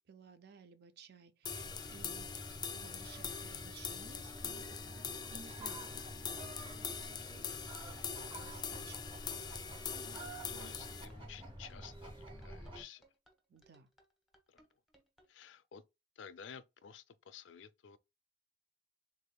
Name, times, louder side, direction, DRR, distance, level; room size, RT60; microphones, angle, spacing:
voice 1, 0.0-2.3 2.6-4.9 5.3-7.6 7.8-10.1 13.5-13.9, right 5 dB, 60° right, 0.5 m, -58 dB
sound 1, 1.4-12.8, right 1 dB, 30° right, 1.4 m, -49 dB
sound 2, 1.5-11.1, left 7 dB, 25° left, 0.4 m, -43 dB
sound 3, 2.8-15.3, equal, ahead, 0.9 m, -68 dB
voice 2, 10.2-13.0 14.5-14.6 15.3-15.8 16.2-18.0, left 7 dB, 90° left, 0.4 m, -53 dB
3.6 x 3.5 x 2.2 m
head